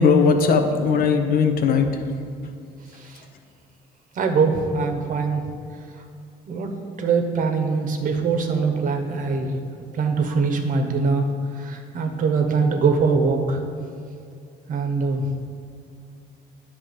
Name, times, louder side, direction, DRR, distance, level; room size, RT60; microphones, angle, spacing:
voice 1, 0.0-2.0, left 5 dB, 60° left, 6 dB, 0.7 m, -18 dB
voice 2, 4.1-5.4 6.5-6.7 7.0-9.6 9.9-11.3 11.6-13.6 14.7-15.2, right 4 dB, 50° right, 4 dB, 0.8 m, -22 dB
8.8 x 3.0 x 6.4 m, 2.3 s
cardioid pair, 110°, 17 cm